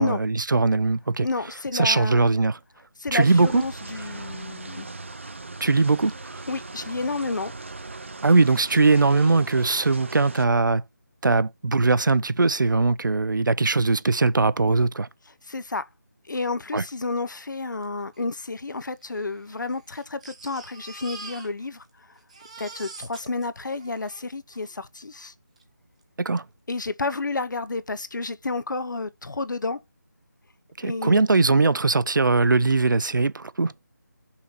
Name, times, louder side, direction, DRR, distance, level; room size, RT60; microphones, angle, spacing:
voice 1, 0.0-1.3 1.7-2.6 3.1-3.6 5.6-6.4 8.2-10.8 11.2-15.1 16.7-16.8 26.2-26.4 30.8-33.7, right 3 dB, 90° right, 0.6 m, -20 dB
voice 2, 1.2-2.3 3.0-4.9 6.5-7.5 15.4-15.9 16.3-22.2 22.6-25.3 26.7-29.8 30.8-31.2, left 3 dB, 75° left, 0.7 m, -30 dB
sound 1, 3.2-10.5, right 3 dB, 40° right, 0.5 m, -39 dB
Crying sobbing, 17.8-17.9 18.1-18.2 19.0-21.9 22.2-24.7 25.6-25.7 26.0-26.1, right 3 dB, 20° right, 1.0 m, -44 dB
5.7 x 4.0 x 4.4 m
figure-of-eight pair, 175°, 10 cm